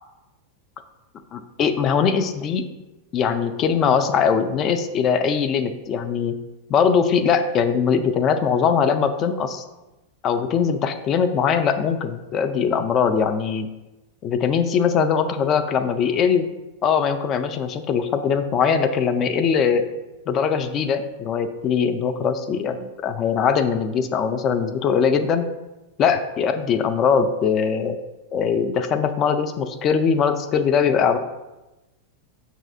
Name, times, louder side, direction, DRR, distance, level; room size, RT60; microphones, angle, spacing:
voice 1, 1.3-2.6 3.1-6.4 6.7-9.6 10.2-13.7 14.2-16.4 16.8-19.9 20.3-25.5 26.0-28.0 28.3-31.2, left 6 dB, 35° left, 9 dB, 0.3 m, -21 dB
5.8 x 2.8 x 2.4 m, 1.0 s
figure-of-eight pair, 90°, 0 cm